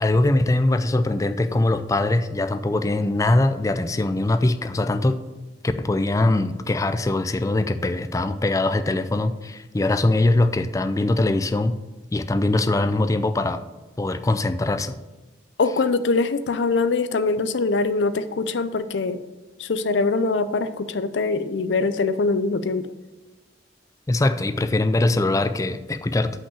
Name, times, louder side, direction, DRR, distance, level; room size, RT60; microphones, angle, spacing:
voice 1, 0.0-5.2 5.8-11.7 12.1-13.6 14.0-15.0 24.1-26.3, left 2 dB, 20° left, 10 dB, 0.4 m, -22 dB
voice 2, 15.6-19.2 19.6-22.9, left 3 dB, 80° left, 12 dB, 0.5 m, -23 dB
5.7 x 5.5 x 6.8 m, 1.1 s
head